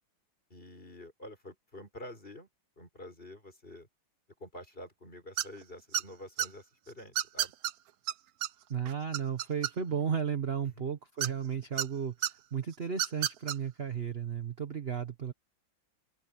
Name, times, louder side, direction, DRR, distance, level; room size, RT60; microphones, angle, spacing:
voice 1, 0.5-2.5 2.8-3.9 4.4-7.5 10.8-10.9, left 1 dB, 25° left, 5.7 m, -48 dB
sound 1, 5.4-5.6 5.9-6.5 7.1-7.7 8.1-8.2 8.4-8.5 8.8-10.0 11.2-11.9 12.2-12.3 12.9-13.5, right 12 dB, 70° right, 0.9 m, -31 dB
voice 2, 8.7-12.1 12.5-15.3, right 7 dB, 40° right, 1.1 m, -34 dB
open air
omnidirectional pair, 2.2 m